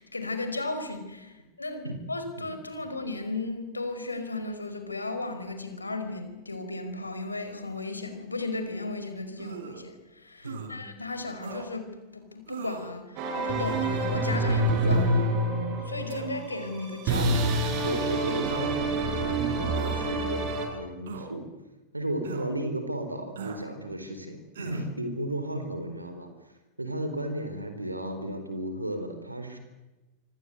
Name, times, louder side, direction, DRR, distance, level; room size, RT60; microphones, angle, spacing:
voice 1, 0.0-15.3 15.8-17.6, left 2 dB, 80° left, 8 dB, 4.9 m, -35 dB
sound 1, 9.4-9.8 10.4-10.7 11.4-11.7 12.5-12.9 13.6-14.0 14.7-15.1 16.1-16.3 17.1-17.5 18.4-18.9 19.7-20.1 21.1-21.3 22.2-22.5 23.4-23.7 24.5-24.9, right 6 dB, 60° right, 4.2 m, -41 dB
voice 2, 10.4-10.9 17.8-21.4 21.9-26.3 26.8-29.6, right 1 dB, 85° right, 8 dB, 4.2 m, -34 dB
sound 2, 13.2-20.7, right 2 dB, 40° right, 7.3 m, -27 dB
27.0 x 26.0 x 8.1 m, 1.1 s
figure-of-eight pair, 90°, 0 cm